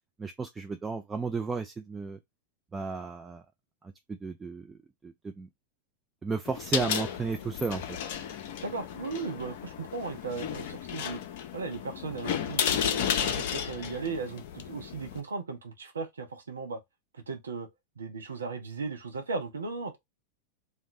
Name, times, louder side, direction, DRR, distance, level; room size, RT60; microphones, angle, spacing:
voice 1, 0.2-2.2 2.7-3.4 3.8-4.8 5.0-5.5 6.2-8.0, right 4 dB, 15° right, 0.4 m, -33 dB
sound 1, 6.5-15.2, left 8 dB, 55° left, 0.5 m, -33 dB
voice 2, 8.6-11.2 11.5-16.8 17.3-17.7 18.0-20.0, right 4 dB, 75° right, 0.7 m, -37 dB
2.5 x 2.1 x 3.8 m
figure-of-eight pair, 90°, 0 cm